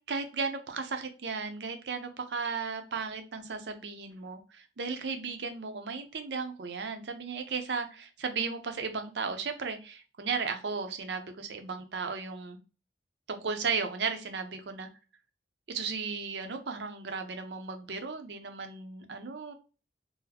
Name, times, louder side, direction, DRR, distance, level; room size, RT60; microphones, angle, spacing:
voice 1, 0.1-12.6 13.3-14.9 15.7-19.5, right 5 dB, 75° right, 7 dB, 0.6 m, -35 dB
3.9 x 2.1 x 2.8 m, 0.33 s
head